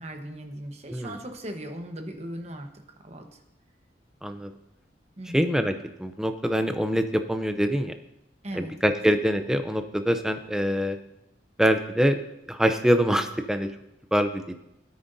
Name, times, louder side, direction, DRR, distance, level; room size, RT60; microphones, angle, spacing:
voice 1, 0.0-3.4 5.2-5.5 8.4-8.7 9.0-9.1, right 1 dB, 35° right, 4 dB, 1.1 m, -38 dB
voice 2, 4.2-4.5 5.3-5.7 6.0-7.9 8.5-11.0 11.6-12.2 12.5-13.7 14.1-14.6, equal, 5° right, 7 dB, 0.5 m, -24 dB
16.5 x 9.5 x 2.7 m, 0.86 s
head